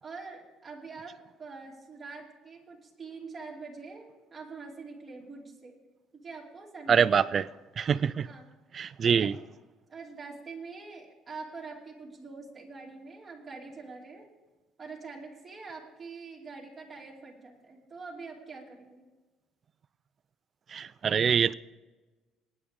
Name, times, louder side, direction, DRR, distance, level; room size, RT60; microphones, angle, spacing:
voice 1, 0.0-5.8 6.1-7.1 8.2-9.3 9.9-14.3 14.8-19.1, right 4 dB, 20° right, -3 dB, 2.8 m, -45 dB
voice 2, 6.9-7.4 7.8-8.3 8.7-9.3 20.7-21.5, right 7 dB, 35° right, 16 dB, 0.3 m, -24 dB
20.5 x 10.0 x 3.7 m, 1.2 s
cardioid pair, 140°, 0 cm